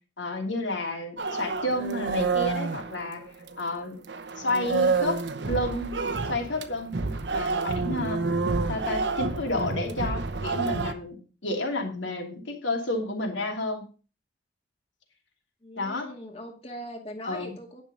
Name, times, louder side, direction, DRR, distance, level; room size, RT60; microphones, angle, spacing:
voice 1, 0.2-3.2 3.6-4.0 4.4-5.9 6.2-8.2 8.7-11.2 11.4-13.8 15.8-16.1 17.2-17.5, left 1 dB, 80° left, 1 dB, 3.0 m, -31 dB
sound 1, 1.2-3.7 4.1-10.9, right 4 dB, 65° right, 0.9 m, -29 dB
voice 2, 15.6-17.8, equal, 30° left, 1 dB, 2.3 m, -40 dB
10.5 x 6.4 x 5.4 m, 0.36 s
head